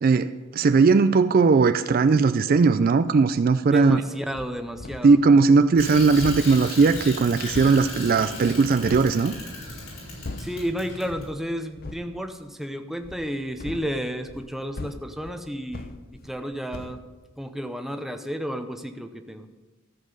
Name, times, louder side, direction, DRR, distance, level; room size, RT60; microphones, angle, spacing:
voice 1, 0.0-4.0 5.0-9.4, right 4 dB, 45° right, 12 dB, 0.3 m, -18 dB
voice 2, 3.7-5.2 10.4-17.0 17.4-19.5, equal, ahead, 7 dB, 0.6 m, -32 dB
sound 1, 4.3-5.2 5.6-9.2 9.6-10.7 11.1-11.4 11.7-12.1 13.0-16.5 16.7-17.0, left 2 dB, 45° left, 0.6 m, -40 dB
Bicycle, 5.8-11.3, left 2 dB, 70° left, 4.6 m, -37 dB
14.0 x 7.5 x 5.3 m, 1.2 s
head